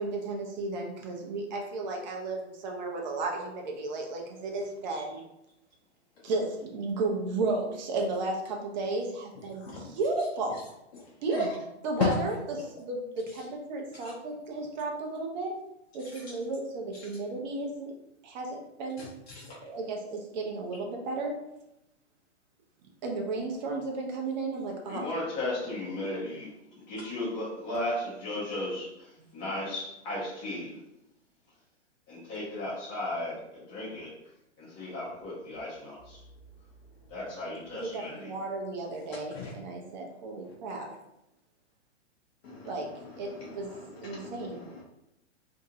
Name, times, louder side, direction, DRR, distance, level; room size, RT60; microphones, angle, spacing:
voice 1, 0.0-5.2 6.2-10.5 11.2-11.5 11.8-15.5 15.9-17.9 18.2-19.0 19.6-21.3 23.0-25.1 29.2-29.3 37.7-40.9 42.6-42.9 43.2-43.7 44.0-44.6, right 3 dB, 40° right, 1 dB, 0.6 m, -33 dB
voice 2, 9.5-9.9 10.5-10.6 10.9-11.5 12.0-12.1 12.6-12.7 13.4-13.5 13.9-14.2 16.0-16.2 17.0-17.1 19.0-19.6 39.1-39.5 40.4-40.5 42.4-44.8, left 5 dB, 60° left, -3 dB, 0.6 m, -38 dB
voice 3, 24.9-26.5 26.9-29.1 29.3-30.7 32.1-34.1 34.6-36.2 37.1-38.3, left 1 dB, 15° left, -8 dB, 0.4 m, -35 dB
2.6 x 2.0 x 2.7 m, 0.86 s
hypercardioid pair, 130°, 36 cm